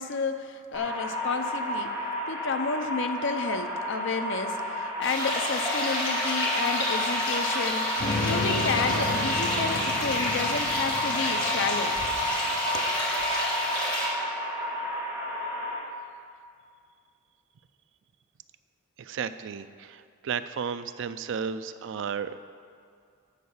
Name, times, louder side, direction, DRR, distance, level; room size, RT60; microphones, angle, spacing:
voice 1, 0.0-1.9 2.3-7.8 8.3-12.0 12.7-12.9, left 4 dB, 65° left, 8 dB, 0.6 m, -31 dB
sound 1, 0.7-15.7, equal, 15° right, 2.4 m, -32 dB
sound 2, 5.0-14.1, left 1 dB, 25° left, 2.2 m, -29 dB
sound 3, 8.0-12.9, left 2 dB, 50° left, 1.4 m, -34 dB
voice 2, 19.0-22.3, right 6 dB, 65° right, 12 dB, 0.4 m, -33 dB
10.5 x 4.7 x 7.2 m, 2.2 s
head